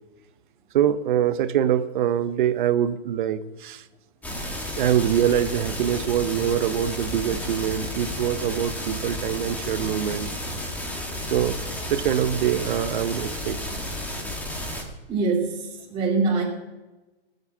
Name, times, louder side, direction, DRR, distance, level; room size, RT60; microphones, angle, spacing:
voice 1, 0.7-3.8 4.8-10.3 11.3-11.6 11.9-13.7, right 10 dB, 55° right, 12 dB, 1.0 m, -24 dB
sound 1, 4.2-14.8, left 1 dB, 5° left, 2.1 m, -32 dB
voice 2, 15.1-16.4, right 4 dB, 15° right, -6 dB, 2.7 m, -24 dB
17.0 x 8.2 x 7.3 m, 1.1 s
hypercardioid pair, 140°, 31 cm